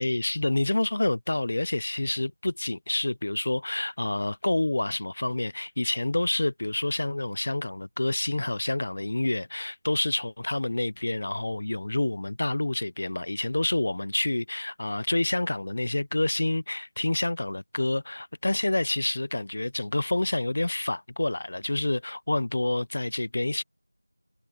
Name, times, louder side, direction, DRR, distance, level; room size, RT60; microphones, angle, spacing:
voice 1, 0.0-23.6, left 2 dB, 15° left, 0.8 m, -28 dB
figure-of-eight pair, 180°, 0 cm